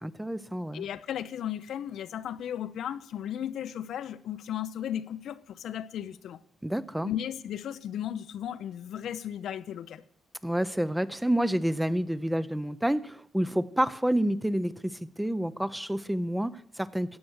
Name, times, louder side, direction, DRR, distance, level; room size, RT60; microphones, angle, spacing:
voice 1, 0.0-0.8 6.6-7.1 10.4-17.2, right 1 dB, 5° right, 0.6 m, -29 dB
voice 2, 0.7-6.4 7.0-10.0, left 10 dB, 70° left, 0.6 m, -35 dB
14.5 x 8.5 x 6.4 m
cardioid pair, 90°, 0 cm